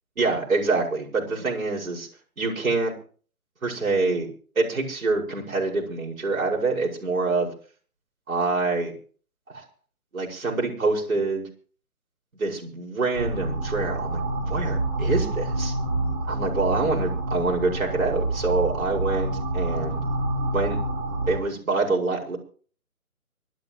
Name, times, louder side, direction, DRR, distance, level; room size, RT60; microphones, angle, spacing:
voice 1, 0.2-2.1 2.4-2.9 3.6-4.3 4.6-7.5 8.3-8.9 9.5-9.6 10.1-11.5 12.4-15.7 16.3-20.0 20.5-20.8 21.3-22.4, right 3 dB, 65° right, -1 dB, 5.8 m, -26 dB
sound 1, 13.1-21.4, right 2 dB, 45° right, 4.5 m, -27 dB
24.5 x 12.0 x 3.0 m, 0.41 s
figure-of-eight pair, 150°, 44 cm